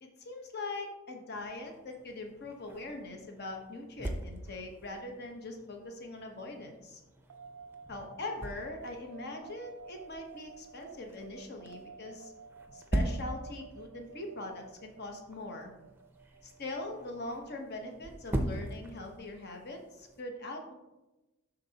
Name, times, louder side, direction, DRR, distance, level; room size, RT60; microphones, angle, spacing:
voice 1, 0.0-7.0 7.9-12.3 12.7-15.7 16.4-20.7, left 2 dB, 50° left, 3 dB, 1.0 m, -42 dB
sound 1, 1.3-20.2, right 1 dB, 10° right, 0.6 m, -42 dB
sound 2, 7.3-18.1, right 5 dB, 70° right, 0.4 m, -52 dB
12.0 x 4.0 x 2.8 m, 1.0 s
head